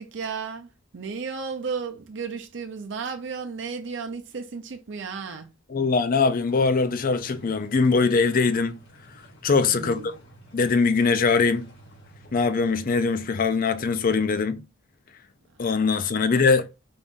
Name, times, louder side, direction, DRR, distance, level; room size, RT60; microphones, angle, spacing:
voice 1, 0.0-5.5 9.6-10.1 16.1-16.5, right 5 dB, 65° right, 0.6 m, -34 dB
voice 2, 5.7-8.8 9.4-10.1 10.5-11.7 12.3-14.6 15.6-16.6, left 4 dB, 45° left, 0.5 m, -22 dB
sound 1, 6.5-14.2, right 1 dB, 70° left, 2.1 m, -51 dB
3.7 x 2.6 x 3.6 m
head